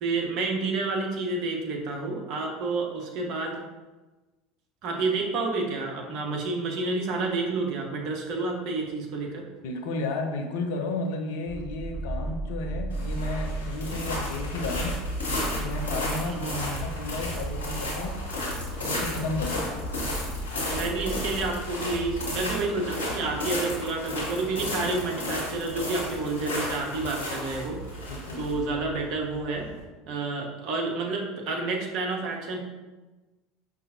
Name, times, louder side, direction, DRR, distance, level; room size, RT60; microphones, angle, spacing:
voice 1, 0.0-3.6 4.8-9.4 16.2-16.8 20.7-28.0 28.4-29.7 30.1-32.6, right 3 dB, 50° right, 1 dB, 0.7 m, -29 dB
voice 2, 9.6-14.9 15.6-16.5 16.8-18.1 18.8-19.7 28.1-28.4, left 3 dB, 60° left, 3 dB, 0.5 m, -33 dB
sound 1, 11.5-22.5, right 2 dB, 10° right, 0.5 m, -36 dB
sound 2, 12.9-29.8, left 1 dB, 75° left, 0.9 m, -33 dB
5.3 x 2.4 x 2.7 m, 1.2 s
figure-of-eight pair, 70°, 0 cm